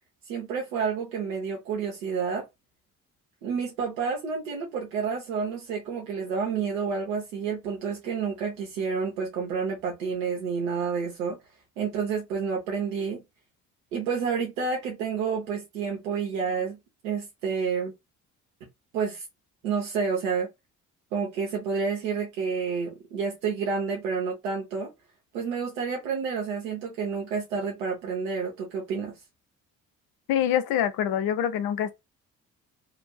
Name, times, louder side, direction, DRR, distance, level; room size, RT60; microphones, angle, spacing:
voice 1, 0.3-2.4 3.4-11.4 11.8-13.2 13.9-16.8 17.0-17.9 18.9-19.2 19.6-20.5 21.1-24.9 25.3-29.1, right 5 dB, 80° right, 0.8 m, -29 dB
voice 2, 30.3-31.9, left 10 dB, 60° left, 0.7 m, -25 dB
3.0 x 2.5 x 2.2 m
hypercardioid pair, 50°, 40 cm